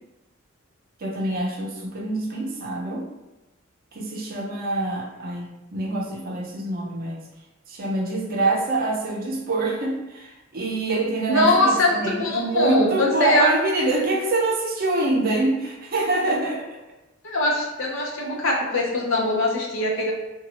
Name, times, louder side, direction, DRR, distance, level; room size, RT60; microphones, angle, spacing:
voice 1, 1.0-3.1 3.9-7.2 7.7-16.7, right 2 dB, 45° right, -1 dB, 0.5 m, -25 dB
voice 2, 11.3-13.5 17.2-20.1, left 1 dB, 65° left, -2 dB, 0.7 m, -22 dB
2.7 x 2.2 x 2.8 m, 0.98 s
head